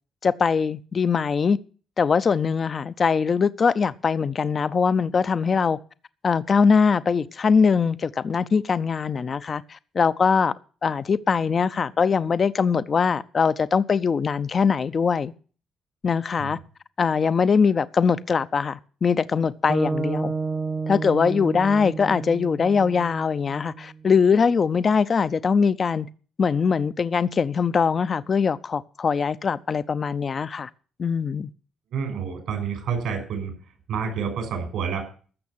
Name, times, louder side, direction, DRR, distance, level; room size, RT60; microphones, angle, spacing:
voice 1, 0.2-1.6 2.0-5.8 6.2-10.5 10.8-15.3 16.0-16.6 17.0-20.3 20.9-26.1 26.4-30.7 31.0-31.5, left 5 dB, 40° left, 0.6 m, -22 dB
sound 1, 19.7-23.9, right 4 dB, 30° right, 1.2 m, -30 dB
voice 2, 31.9-33.6 33.9-35.0, right 6 dB, 80° right, 5.9 m, -28 dB
14.5 x 6.4 x 9.7 m
cardioid pair, 90°, 0 cm